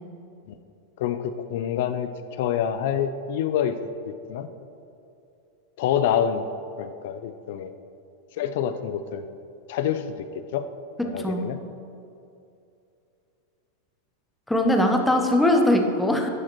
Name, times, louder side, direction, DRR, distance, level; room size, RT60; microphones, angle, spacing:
voice 1, 1.0-3.8 4.1-4.5 5.8-6.5 6.8-7.7 8.4-9.4 9.7-10.7 11.0-11.6, left 9 dB, 60° left, 10 dB, 0.3 m, -27 dB
voice 2, 14.5-16.3, left 1 dB, 5° left, 3 dB, 0.5 m, -21 dB
10.5 x 4.8 x 3.0 m, 2.7 s
supercardioid pair, 155°, 0 cm